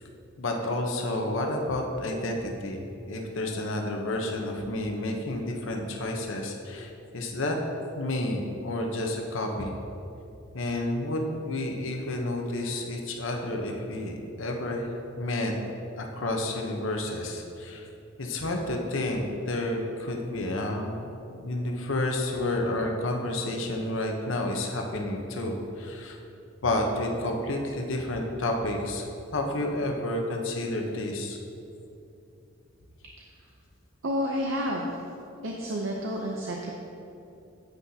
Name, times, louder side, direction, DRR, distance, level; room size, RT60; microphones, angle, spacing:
voice 1, 0.4-7.6 8.0-9.7 10.5-14.8 15.2-15.5 16.0-17.8 18.2-26.2 26.6-29.0 29.3-31.4, left 1 dB, 70° left, 2 dB, 0.9 m, -30 dB
voice 2, 34.0-34.9 35.4-36.7, equal, 70° right, -1 dB, 0.7 m, -30 dB
9.7 x 8.2 x 2.8 m, 2.8 s
head